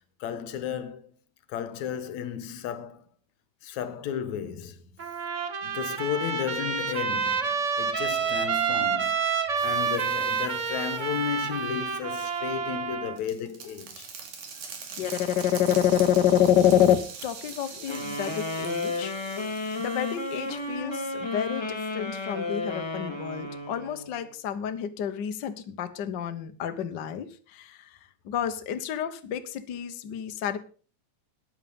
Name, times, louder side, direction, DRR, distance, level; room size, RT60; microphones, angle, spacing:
voice 1, 0.2-1.1 1.5-3.0 3.6-4.8 5.6-9.3 9.6-14.1, left 9 dB, 75° left, 2.3 m, -33 dB
Trumpet, 5.0-13.2, right 6 dB, 40° right, 1.1 m, -28 dB
sound 1, 9.6-11.7 12.7-20.6, right 5 dB, 85° right, 3.7 m, -43 dB
voice 2, 15.0-17.0 17.2-19.1 19.8-27.9 28.2-30.6, left 10 dB, 55° left, 1.2 m, -27 dB
sound 2, 17.9-24.3, left 2 dB, 10° left, 1.6 m, -33 dB
14.0 x 10.0 x 5.2 m
omnidirectional pair, 3.4 m